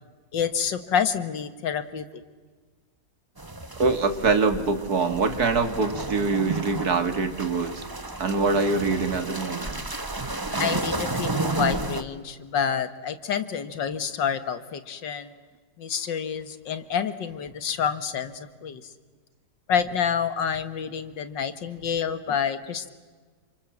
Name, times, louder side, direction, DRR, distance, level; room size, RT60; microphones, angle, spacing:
voice 1, 0.3-2.0 10.6-15.3 15.8-18.8 19.7-22.9, left 7 dB, 90° left, 11 dB, 2.2 m, -28 dB
sound 1, 3.4-12.0, right 2 dB, 15° right, 1.1 m, -32 dB
voice 2, 3.8-7.8 8.2-9.9, right 4 dB, 60° right, 9 dB, 2.5 m, -24 dB
29.5 x 27.0 x 7.3 m, 1.4 s
omnidirectional pair, 1.9 m